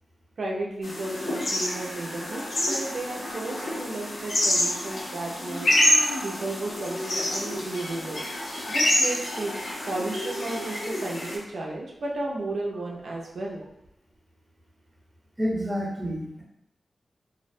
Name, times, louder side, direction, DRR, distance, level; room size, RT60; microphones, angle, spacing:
voice 1, 0.4-8.2 8.7-13.7, right 2 dB, 80° right, -2 dB, 0.5 m, -34 dB
sound 1, 0.8-11.4, left 1 dB, 85° left, 0.6 m, -27 dB
voice 2, 15.4-16.4, equal, 20° right, -3 dB, 0.7 m, -29 dB
2.4 x 2.1 x 2.6 m, 0.83 s
cardioid pair, 70°, 0 cm